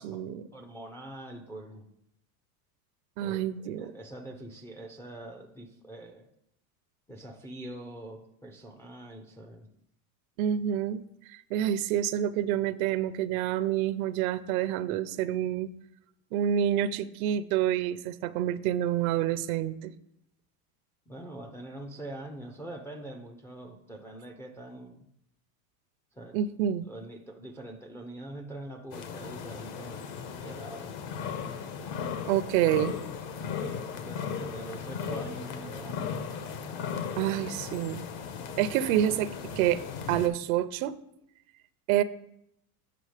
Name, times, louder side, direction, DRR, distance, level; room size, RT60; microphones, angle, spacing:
voice 1, 0.0-0.4 3.2-3.9 10.4-11.0 11.3-15.7 16.3-19.9 26.3-26.9 32.3-33.0 37.2-38.0 38.6-39.8 40.1-41.0 41.9-42.0, right 11 dB, 70° right, 14 dB, 0.6 m, -28 dB
voice 2, 0.5-1.9 3.2-6.3 7.1-9.7 21.1-25.1 26.2-26.4 26.8-30.0 30.4-30.9 32.6-32.9 34.0-36.2, right 1 dB, 5° left, 2 dB, 0.3 m, -44 dB
sound 1, 28.9-40.3, left 6 dB, 65° left, 1.1 m, -37 dB
7.8 x 5.1 x 4.9 m, 0.77 s
supercardioid pair, 125°, 43 cm